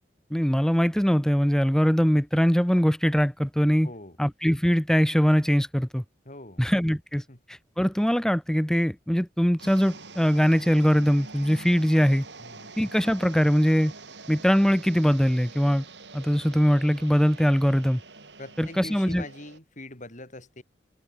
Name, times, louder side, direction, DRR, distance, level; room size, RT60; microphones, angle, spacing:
voice 1, 0.3-3.9 4.2-6.0 6.6-7.2 7.5-12.2 12.8-13.9 14.3-15.8 16.1-18.0 18.6-19.2, equal, 5° left, 0.9 m, -22 dB
voice 2, 3.8-4.2 6.2-6.7 7.3-7.4 12.4-12.7 18.4-20.6, left 2 dB, 45° left, 5.0 m, -43 dB
sound 1, 9.6-19.6, right 3 dB, 85° right, 7.2 m, -45 dB
head